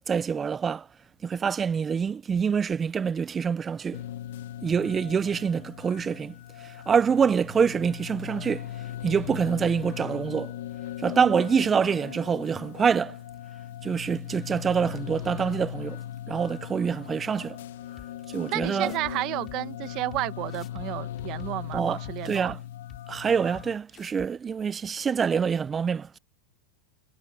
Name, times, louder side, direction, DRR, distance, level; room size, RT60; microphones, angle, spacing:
voice 1, 0.1-0.9 1.2-4.0 4.6-6.3 6.6-8.7 9.0-10.5 11.0-13.2 13.8-16.0 16.3-17.6 18.3-18.9 21.7-22.0 22.2-22.6 23.1-26.2, right 6 dB, 20° right, 0.7 m, -26 dB
sound 1, 3.9-23.8, left 12 dB, 75° left, 1.7 m, -38 dB
sound 2, 18.0-18.1 18.6-19.1 19.5-19.6 20.1-20.2 20.5-20.8 21.2-22.6 22.9-23.0 23.5-23.6 23.9-24.3, left 9 dB, 30° left, 6.9 m, -47 dB
voice 2, 18.5-22.6, right 18 dB, 50° right, 1.4 m, -32 dB
hypercardioid pair, 110°, 0 cm